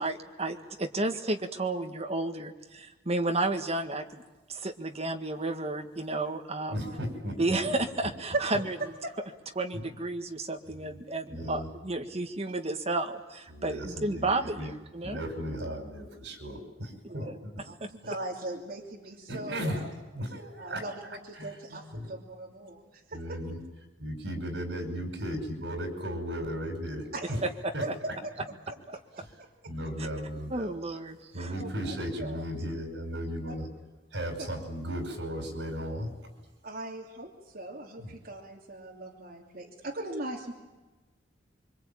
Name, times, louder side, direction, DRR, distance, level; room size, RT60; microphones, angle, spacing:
voice 1, 0.0-4.2 4.5-6.8 7.4-8.8 9.6-15.2 17.2-17.3 30.5-31.5, right 2 dB, 35° right, 5 dB, 1.8 m, -32 dB
voice 2, 6.7-7.9 9.7-9.8 10.7-11.0 11.3-11.7 13.5-14.7 15.0-17.6 19.3-19.8 20.1-20.9 21.3-21.6 21.9-22.1 23.1-23.6 24.0-27.4 27.7-27.8 29.2-29.3 29.7-30.7 31.3-33.7 34.1-36.3 38.0-38.1, equal, 80° right, 5 dB, 5.8 m, -36 dB
voice 3, 8.8-9.1 17.2-19.9 20.6-23.4 27.1-27.4 27.8-28.1 28.9-29.2 31.5-32.4 36.6-40.5, right 2 dB, 55° right, -2 dB, 3.0 m, -39 dB
25.0 x 24.5 x 8.8 m, 1.1 s
head